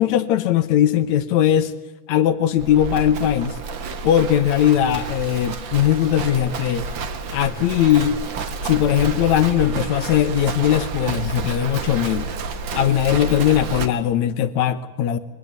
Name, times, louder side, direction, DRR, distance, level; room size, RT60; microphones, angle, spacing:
voice 1, 0.0-1.7 2.1-3.6 4.0-6.8 7.3-8.2 8.6-12.3 12.7-15.2, left 11 dB, 85° left, 13 dB, 1.6 m, -19 dB
Livestock farm animals working animals, 2.6-13.9, right 4 dB, 75° right, 1.1 m, -29 dB
23.5 x 18.0 x 9.5 m, 1.0 s
omnidirectional pair, 4.6 m